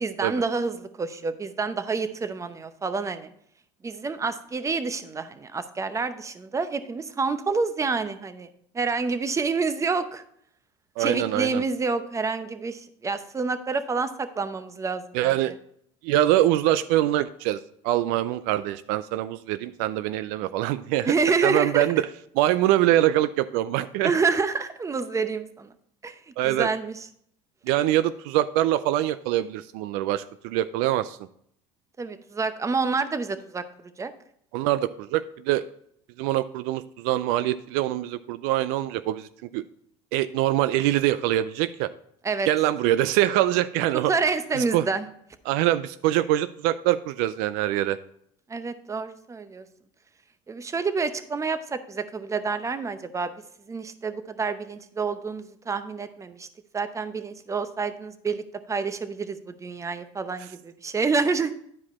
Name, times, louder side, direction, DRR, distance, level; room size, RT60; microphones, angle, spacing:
voice 1, 0.0-3.3 3.8-10.2 11.0-15.3 21.1-21.9 24.0-25.7 26.0-26.2 26.4-27.1 32.0-33.6 34.0-34.1 42.2-42.5 44.1-45.1 48.5-49.6 50.5-53.3 53.7-56.5 56.7-61.5, right 4 dB, 20° right, 11 dB, 0.7 m, -28 dB
voice 2, 11.0-11.6 15.1-15.5 16.0-21.1 21.4-22.1 22.3-24.1 26.4-26.7 27.6-31.2 34.5-35.6 36.2-39.3 39.5-39.6 40.1-41.9 42.5-44.1 44.5-44.9 45.5-48.0 60.4-60.5, right 14 dB, 75° right, 14 dB, 0.4 m, -24 dB
10.5 x 4.9 x 4.2 m, 0.68 s
supercardioid pair, 95°, 15 cm